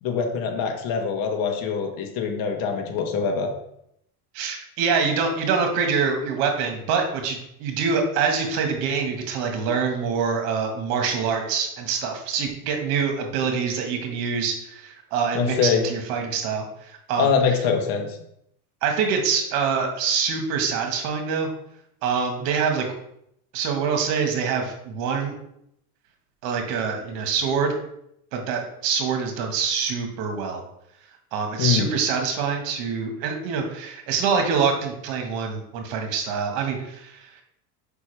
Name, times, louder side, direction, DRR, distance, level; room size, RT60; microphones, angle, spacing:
voice 1, 0.0-3.5 15.3-15.8 17.2-18.1 31.6-31.9, left 6 dB, 50° left, 3 dB, 1.2 m, -23 dB
voice 2, 4.3-17.3 18.8-21.5 22.0-22.8 23.5-25.4 26.4-27.7 28.3-30.6 31.3-37.4, right 5 dB, 60° right, 4 dB, 1.5 m, -25 dB
6.1 x 5.3 x 3.3 m, 0.75 s
supercardioid pair, 135°, 45 cm